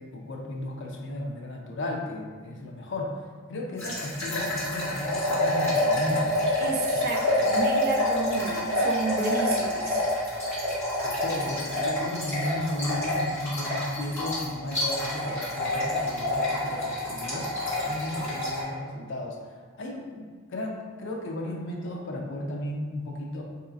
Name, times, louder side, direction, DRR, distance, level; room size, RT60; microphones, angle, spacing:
voice 1, 0.0-3.1 3.5-6.3 11.0-17.5 17.8-20.3 20.5-23.4, left 1 dB, 65° left, 0 dB, 0.5 m, -34 dB
sound 1, 3.8-18.6, left 1 dB, 15° left, 1.3 m, -27 dB
voice 2, 6.6-10.1, right 3 dB, 50° right, 1 dB, 0.4 m, -31 dB
3.9 x 2.8 x 2.4 m, 1.5 s
head